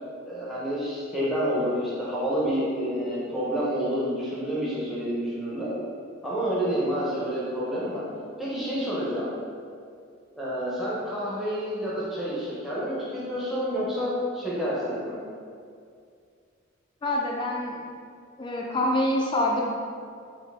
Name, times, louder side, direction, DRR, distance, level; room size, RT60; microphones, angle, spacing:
voice 1, 0.2-5.7 6.2-8.0 8.4-9.3 10.3-15.1, equal, ahead, -8 dB, 0.7 m, -29 dB
voice 2, 17.0-17.8 18.4-19.6, left 1 dB, 25° left, -2 dB, 0.3 m, -25 dB
4.6 x 2.6 x 3.4 m, 2.3 s
head